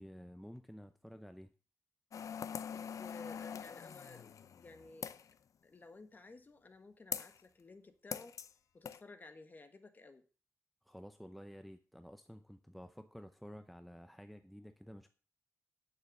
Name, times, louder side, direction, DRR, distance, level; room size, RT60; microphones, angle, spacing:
voice 1, 0.0-1.5 10.8-15.1, equal, ahead, 9 dB, 0.6 m, -52 dB
sound 1, 2.1-5.3 7.1-7.4 8.1-8.5 8.9-9.0, left 7 dB, 80° left, 0.6 m, -43 dB
voice 2, 2.7-5.2 5.6-8.4 8.7-10.2, left 3 dB, 35° left, 8 dB, 1.4 m, -55 dB
10.0 x 6.7 x 6.4 m, 0.37 s
wide cardioid pair, 150°, 5 cm